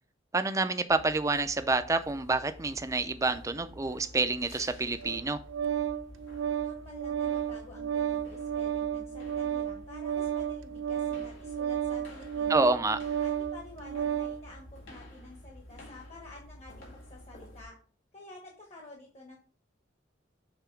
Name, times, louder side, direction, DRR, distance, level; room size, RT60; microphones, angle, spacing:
voice 1, 0.3-5.4 12.5-13.0, right 3 dB, 15° right, 10 dB, 0.5 m, -28 dB
sound 1, 0.9-17.6, left 1 dB, 85° left, 2.0 m, -50 dB
Organ, 5.0-14.4, right 9 dB, 90° right, 0.5 m, -32 dB
voice 2, 6.3-12.8 13.2-17.8 18.1-19.4, left 1 dB, 35° left, 0 dB, 1.1 m, -50 dB
6.9 x 3.7 x 4.5 m, 0.42 s
head